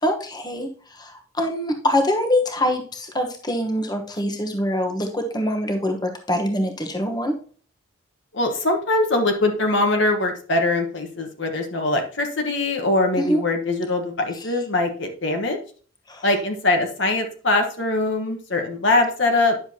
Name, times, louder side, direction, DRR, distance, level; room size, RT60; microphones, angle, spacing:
voice 1, 0.0-7.3 13.2-13.4 16.1-16.3, left 1 dB, 20° left, 4 dB, 1.1 m, -24 dB
voice 2, 8.3-15.6 16.2-19.6, left 2 dB, 60° left, 3 dB, 1.3 m, -22 dB
10.0 x 6.8 x 2.8 m, 0.42 s
head